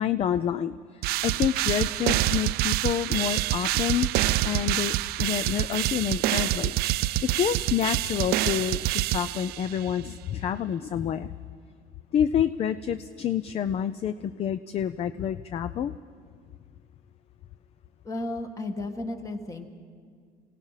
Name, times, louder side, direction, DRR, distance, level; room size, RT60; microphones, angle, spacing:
voice 1, 0.0-4.1 4.4-11.4 12.1-15.9, left 9 dB, 40° left, 13 dB, 0.4 m, -28 dB
sound 1, 1.0-9.8, right 16 dB, 75° right, 0.4 m, -26 dB
voice 2, 18.0-19.7, left 2 dB, 20° left, 6 dB, 1.6 m, -33 dB
27.0 x 17.5 x 5.7 m, 2.1 s
cardioid pair, 150°, 16 cm